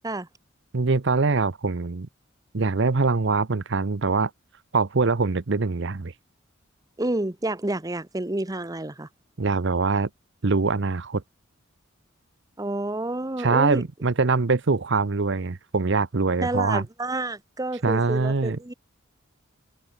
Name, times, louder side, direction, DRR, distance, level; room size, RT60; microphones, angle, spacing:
voice 1, 0.7-2.1 2.5-4.3 4.7-6.1 9.4-10.1 10.4-11.2 13.4-16.8 17.8-18.6, right 4 dB, 60° right, 0.8 m, -23 dB
voice 2, 7.0-9.1 12.6-13.8 16.4-18.7, right 2 dB, 20° right, 1.0 m, -29 dB
head